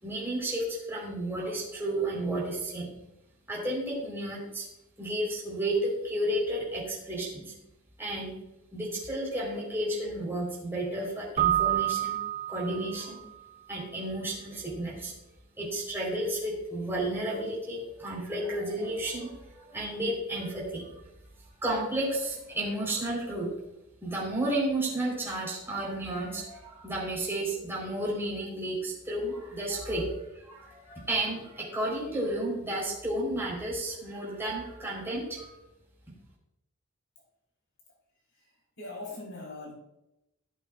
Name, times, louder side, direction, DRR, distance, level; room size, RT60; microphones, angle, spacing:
voice 1, 0.0-2.9 3.5-4.7 5.0-7.5 8.0-8.3 8.7-12.2 12.5-13.2 13.7-15.1 15.6-20.9 21.6-23.5 24.0-35.5, right 1 dB, 10° right, -5 dB, 4.2 m, -32 dB
Keyboard (musical), 11.4-13.2, right 12 dB, 25° right, 0.6 m, -28 dB
voice 2, 38.3-39.8, left 2 dB, 60° left, -2 dB, 4.2 m, -42 dB
17.0 x 8.4 x 2.5 m, 0.89 s
head